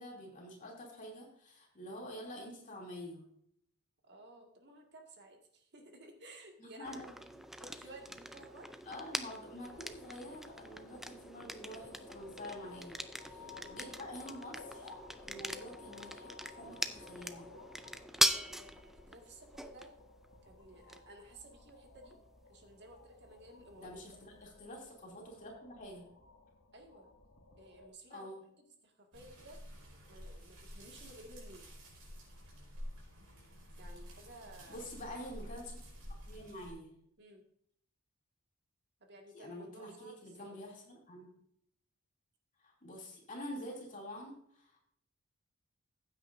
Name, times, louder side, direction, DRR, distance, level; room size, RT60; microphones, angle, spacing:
voice 1, 0.0-3.3 6.6-7.1 8.9-14.9 15.3-17.5 23.8-26.0 28.1-28.4 34.7-35.8 36.1-37.0 39.3-41.3 42.6-44.8, equal, 35° left, -2 dB, 2.9 m, -47 dB
voice 2, 4.0-6.9 7.6-8.7 13.4-14.1 18.2-19.9 20.4-22.2 22.5-23.9 26.7-27.1 27.6-28.3 28.8-29.6 30.1-31.7 33.8-34.8 37.2-37.4 39.0-40.6, right 1 dB, 50° right, 2 dB, 2.0 m, -55 dB
sound 1, 6.8-24.6, equal, ahead, 0.4 m, -41 dB
sound 2, 9.6-27.9, left 4 dB, 65° left, 1.9 m, -56 dB
sound 3, 29.1-36.7, equal, 85° right, 4.6 m, -50 dB
15.0 x 8.7 x 2.7 m, 0.68 s
head